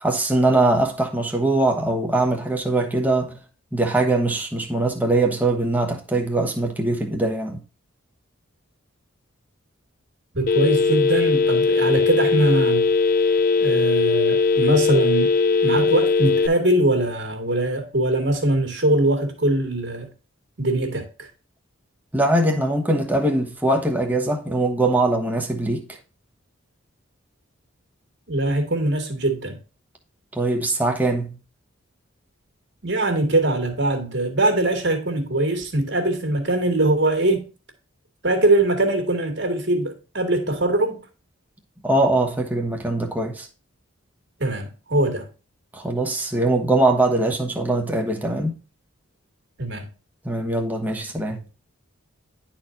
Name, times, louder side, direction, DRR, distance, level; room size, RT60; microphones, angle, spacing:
voice 1, 0.0-3.4 3.7-7.6 22.1-25.9 30.3-31.4 41.8-43.5 45.7-48.5 50.2-51.4, right 2 dB, 10° right, 1.0 m, -22 dB
voice 2, 10.3-12.9 13.6-15.3 15.6-20.1 20.6-21.3 28.3-29.6 32.8-37.5 38.2-41.0 44.4-45.3 49.6-49.9, right 1 dB, 55° right, 1.9 m, -22 dB
Telephone, 10.5-16.5, left 4 dB, 40° left, 0.4 m, -19 dB
11.0 x 4.4 x 2.5 m
head